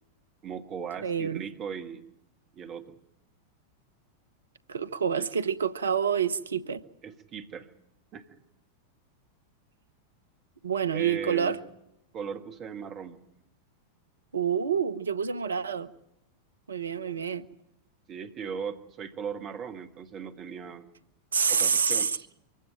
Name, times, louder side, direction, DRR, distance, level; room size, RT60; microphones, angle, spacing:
voice 1, 0.4-2.1 2.6-3.0 7.0-7.7 8.1-8.3 10.9-11.6 12.1-13.2 16.9-17.2 18.1-20.9 21.5-22.3, right 6 dB, 30° right, 6 dB, 1.4 m, -38 dB
voice 2, 1.0-1.4 4.7-6.8 10.6-11.6 14.3-15.9 16.7-17.4 21.3-22.2, right 7 dB, 70° right, 14 dB, 0.8 m, -27 dB
24.5 x 16.0 x 9.1 m, 0.84 s
figure-of-eight pair, 90°, 0 cm